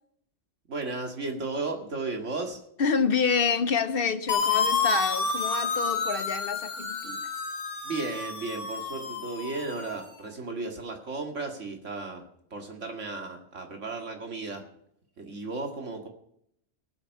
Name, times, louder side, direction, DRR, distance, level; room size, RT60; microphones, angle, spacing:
voice 1, 0.7-2.6 7.8-12.3 12.5-14.7 15.2-16.1, right 3 dB, 80° right, 2.2 m, -34 dB
voice 2, 2.8-7.2, left 6 dB, 55° left, 0.8 m, -27 dB
sound 1, 4.3-10.1, left 4 dB, 75° left, 1.8 m, -30 dB
18.5 x 8.0 x 5.4 m
omnidirectional pair, 1.3 m